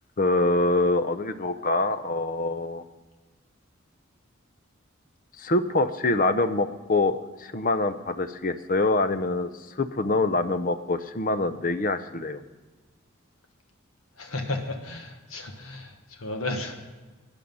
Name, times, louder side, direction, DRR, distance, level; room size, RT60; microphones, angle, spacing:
voice 1, 0.2-2.8 5.4-9.5 9.8-12.4, left 2 dB, 40° left, 11 dB, 0.6 m, -25 dB
voice 2, 14.2-16.9, left 2 dB, 85° left, 4 dB, 1.4 m, -34 dB
15.0 x 10.0 x 5.4 m, 1.2 s
head